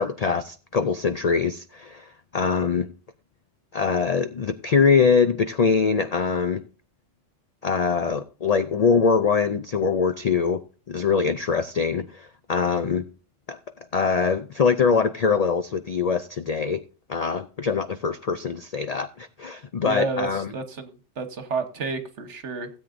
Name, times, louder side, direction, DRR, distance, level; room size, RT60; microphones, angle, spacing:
voice 1, 0.0-2.9 3.7-6.6 7.6-10.6 10.9-13.1 13.5-13.6 13.9-16.8 17.1-20.5, left 5 dB, 90° left, 0.3 m, -23 dB
voice 2, 19.8-22.7, right 4 dB, 65° right, 1.4 m, -30 dB
16.0 x 8.2 x 2.6 m
omnidirectional pair, 1.3 m